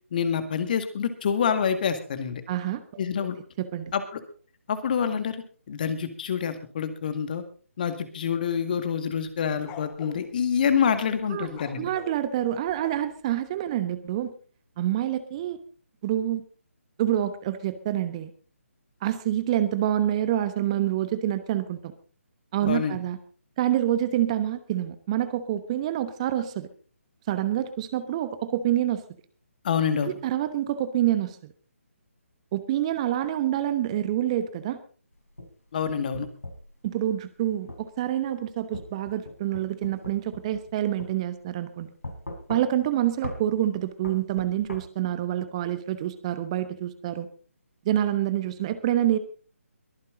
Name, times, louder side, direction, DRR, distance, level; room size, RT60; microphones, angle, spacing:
voice 1, 0.1-2.4 3.0-3.4 3.9-4.2 4.7-7.4 7.8-11.9 22.6-23.0 29.6-30.1 35.7-36.3, left 7 dB, 40° left, 9 dB, 2.0 m, -27 dB
voice 2, 2.5-2.8 3.6-3.9 11.3-11.5 11.8-14.3 14.8-15.6 16.0-16.4 17.0-18.3 19.0-21.9 22.5-23.2 23.6-26.7 27.3-29.0 30.0-31.5 32.5-34.8 36.8-41.9 42.5-47.3 47.8-49.2, right 12 dB, 25° right, 12 dB, 1.1 m, -27 dB
sound 1, 9.3-10.2 11.5-13.3, left 8 dB, 20° left, 1.8 m, -43 dB
sound 2, 35.1-36.7 37.7-37.9 38.7-40.7 41.0-41.1 42.0-42.9 43.2-43.4 44.0-44.8, left 1 dB, 80° left, 4.4 m, -39 dB
22.5 x 9.6 x 3.9 m, 0.40 s
figure-of-eight pair, 145°, 8 cm